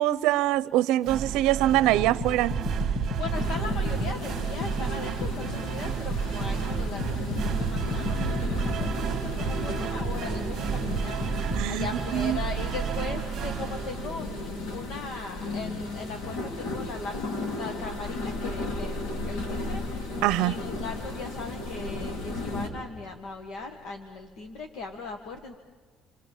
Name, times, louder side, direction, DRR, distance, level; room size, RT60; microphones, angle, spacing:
voice 1, 0.0-2.6 11.5-11.9 12.1-12.4 20.2-20.6, right 14 dB, 85° right, 0.7 m, -23 dB
sound 1, 1.0-14.7, right 8 dB, 40° right, 1.8 m, -32 dB
sound 2, 2.2-5.6 6.1-10.4 10.9-11.9, right 2 dB, 35° left, 2.2 m, -32 dB
voice 2, 3.0-14.3 14.7-19.0 19.3-25.6, left 4 dB, 55° left, 1.8 m, -39 dB
sound 3, 3.3-22.7, left 2 dB, 80° left, 3.8 m, -35 dB
28.5 x 26.0 x 7.3 m
cardioid pair, 175°, 0 cm